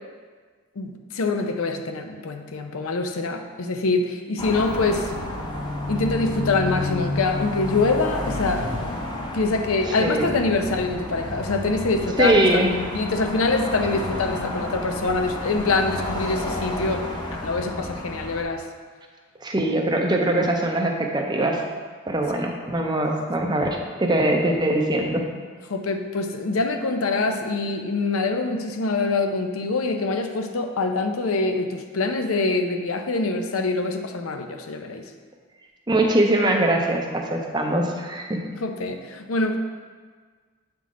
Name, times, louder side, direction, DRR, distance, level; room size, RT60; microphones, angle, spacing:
voice 1, 0.8-5.1 5.9-8.7 9.3-17.1 17.3-18.6 22.3-22.4 25.7-35.0 38.6-39.6, left 3 dB, 80° left, 5 dB, 0.6 m, -25 dB
sound 1, 4.4-18.4, left 1 dB, 20° left, 0.6 m, -31 dB
voice 2, 12.2-12.8 19.4-21.6 22.1-25.3 35.9-38.5, right 1 dB, 20° right, 1 dB, 0.6 m, -22 dB
8.3 x 3.8 x 3.7 m, 1.5 s
head